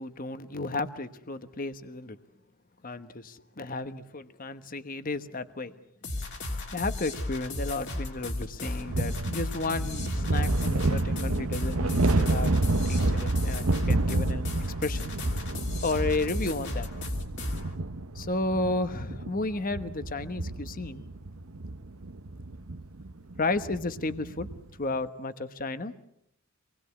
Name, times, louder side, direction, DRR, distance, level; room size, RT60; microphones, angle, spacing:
voice 1, 0.0-2.2 2.8-5.7 6.7-12.5 12.9-14.5 14.8-15.1 15.8-16.9 18.1-21.0 23.4-24.5 24.8-25.9, left 2 dB, 40° left, 11 dB, 1.1 m, -32 dB
sound 1, 6.0-17.7, left 2 dB, 55° left, 3.2 m, -35 dB
sound 2, 8.9-24.7, right 2 dB, 75° right, 1.0 m, -30 dB
26.5 x 20.0 x 8.4 m, 0.76 s
head